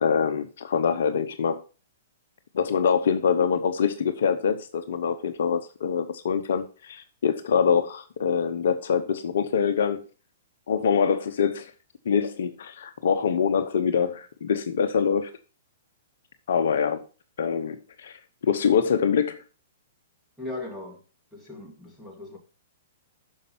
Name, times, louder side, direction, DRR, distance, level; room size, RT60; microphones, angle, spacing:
voice 1, 0.0-1.6 2.5-10.0 10.7-11.7 12.0-15.3 16.5-17.0 17.4-18.2 18.4-19.4, left 7 dB, 65° left, 0.8 m, -24 dB
voice 2, 20.4-21.0 21.3-22.4, left 2 dB, 5° right, 2.5 m, -38 dB
6.5 x 5.3 x 5.9 m
hypercardioid pair, 120°, 0 cm